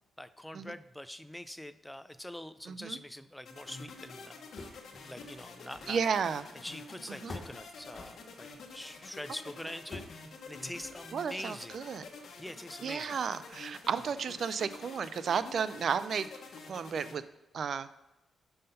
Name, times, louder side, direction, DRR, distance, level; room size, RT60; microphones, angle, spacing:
voice 1, 0.2-4.4 4.9-6.0 6.6-11.8 12.4-13.1, left 1 dB, 5° left, 12 dB, 0.4 m, -44 dB
voice 2, 2.7-3.0 5.9-6.5 7.1-7.3 11.1-12.0 12.8-16.3 16.7-17.2 17.5-18.0, right 6 dB, 60° right, 14 dB, 0.4 m, -33 dB
sound 1, 3.5-17.2, left 4 dB, 65° left, 1.2 m, -48 dB
sound 2, 4.6-5.5 5.7-6.8 7.3-8.9 9.9-10.2 10.7-11.3, left 3 dB, 45° left, 1.1 m, -47 dB
5.6 x 5.5 x 5.4 m, 0.97 s
cardioid pair, 75°, 0 cm